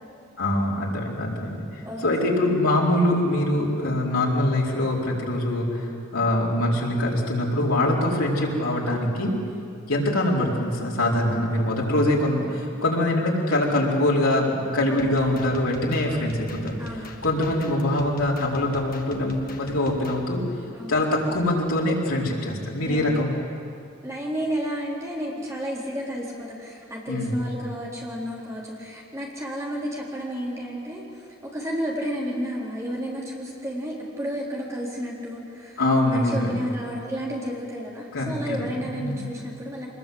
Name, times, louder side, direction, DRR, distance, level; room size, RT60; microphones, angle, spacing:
voice 1, 0.4-9.3 9.9-16.8 17.2-20.4 20.9-23.3 27.1-27.4 35.8-36.5 38.1-39.2, left 1 dB, 85° left, -3 dB, 4.5 m, -23 dB
sound 1, 15.0-20.2, left 1 dB, 40° left, 1.9 m, -42 dB
voice 2, 16.8-17.2 20.7-21.0 22.9-23.3 24.0-39.9, equal, 15° right, -4 dB, 3.9 m, -32 dB
23.5 x 21.0 x 7.9 m, 2.4 s
head